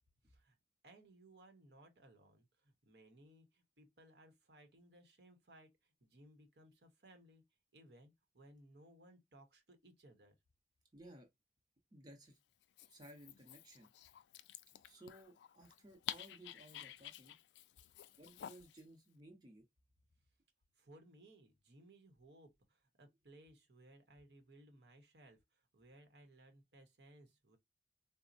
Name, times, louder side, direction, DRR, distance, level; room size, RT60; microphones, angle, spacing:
voice 1, 0.2-0.6 0.8-7.4 7.7-10.4 20.7-27.6, right 1 dB, 70° right, 0.9 m, -63 dB
voice 2, 10.9-11.3 11.9-12.4 12.9-13.9 14.8-17.4 18.2-19.6, right 1 dB, 25° right, 0.7 m, -58 dB
Dog, 12.6-18.8, left 11 dB, 85° left, 0.3 m, -51 dB
4.0 x 2.0 x 2.5 m
head